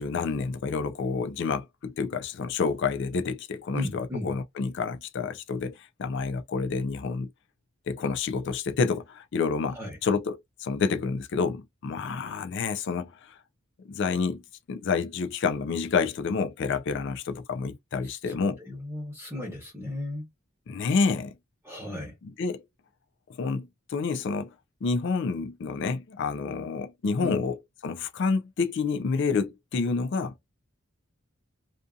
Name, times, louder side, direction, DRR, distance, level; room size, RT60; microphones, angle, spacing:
voice 1, 0.0-7.3 7.9-13.4 13.8-14.4 14.7-18.6 20.7-21.3 22.2-22.6 23.4-24.5 24.8-27.5 27.8-30.3, left 4 dB, 55° left, 0.4 m, -29 dB
voice 2, 3.7-4.3 9.7-10.0 18.0-20.3 21.6-22.1 27.2-27.4, left 1 dB, 10° right, 0.9 m, -35 dB
2.5 x 2.5 x 2.3 m
head